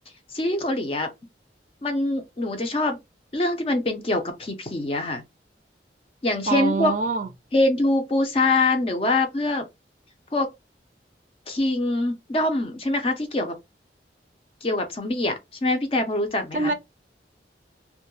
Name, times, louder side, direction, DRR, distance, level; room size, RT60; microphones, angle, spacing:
voice 1, 0.3-1.1 1.8-3.0 3.3-5.2 6.2-6.9 7.5-9.6 10.3-10.5 11.5-13.6 14.6-16.7, left 2 dB, 30° left, 0.5 m, -24 dB
voice 2, 6.5-7.3 16.5-16.7, right 4 dB, 45° right, 0.4 m, -24 dB
2.2 x 2.0 x 2.9 m
head